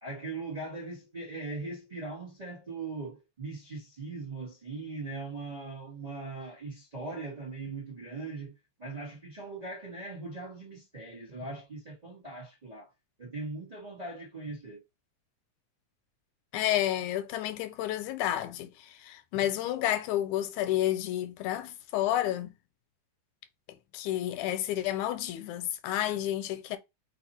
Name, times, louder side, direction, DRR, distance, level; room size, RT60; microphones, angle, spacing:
voice 1, 0.0-12.9 13.2-14.8, right 3 dB, 85° right, 0.3 m, -40 dB
voice 2, 16.5-22.5 23.9-26.8, left 13 dB, 85° left, 2.0 m, -30 dB
4.5 x 2.6 x 4.2 m
omnidirectional pair, 3.4 m